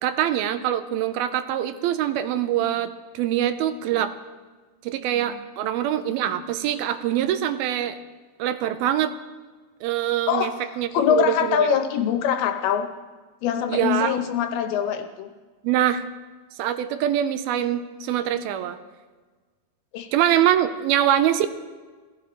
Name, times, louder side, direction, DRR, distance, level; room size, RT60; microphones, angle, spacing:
voice 1, 0.0-4.1 4.8-8.0 8.4-9.1 9.8-10.5 10.8-11.7 13.7-14.2 15.6-16.0 16.6-18.8 20.1-21.5, right 11 dB, 85° right, 10 dB, 2.6 m, -24 dB
voice 2, 10.3-12.9 13.4-15.3 19.9-20.1, left 8 dB, 85° left, 7 dB, 2.9 m, -23 dB
18.0 x 15.0 x 3.1 m, 1.4 s
omnidirectional pair, 4.4 m